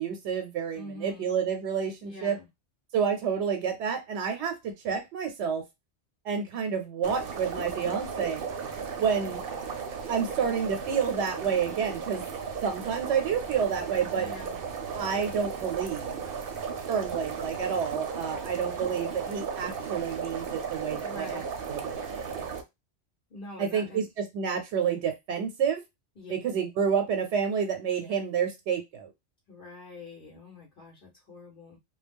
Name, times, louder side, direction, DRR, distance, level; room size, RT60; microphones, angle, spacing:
voice 1, 0.0-2.4 2.9-5.6 6.2-8.4 9.0-9.4 10.1-12.2 12.6-14.3 14.9-16.2 16.9-21.4 21.7-22.2 23.6-25.8 26.3-29.1, right 7 dB, 90° right, 6 dB, 0.9 m, -29 dB
voice 2, 0.7-1.3 2.0-2.5 14.1-14.6 21.0-21.5 23.3-24.1 26.2-26.3 28.0-28.2 29.5-31.8, left 2 dB, 55° left, -2 dB, 0.9 m, -45 dB
sound 1, 7.0-22.6, right 6 dB, 60° right, 0.7 m, -35 dB
2.3 x 2.0 x 3.3 m, 0.21 s
omnidirectional pair, 1.1 m